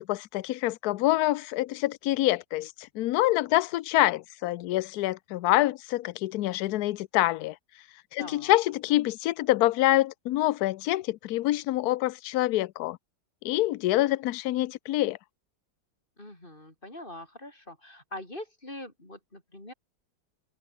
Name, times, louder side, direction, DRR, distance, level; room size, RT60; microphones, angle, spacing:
voice 1, 0.0-7.6 8.1-13.0 13.4-15.2, left 16 dB, 70° left, 1.0 m, -26 dB
voice 2, 8.2-8.6 14.0-14.2 16.2-19.7, left 1 dB, 25° left, 5.4 m, -43 dB
omnidirectional pair, 1.9 m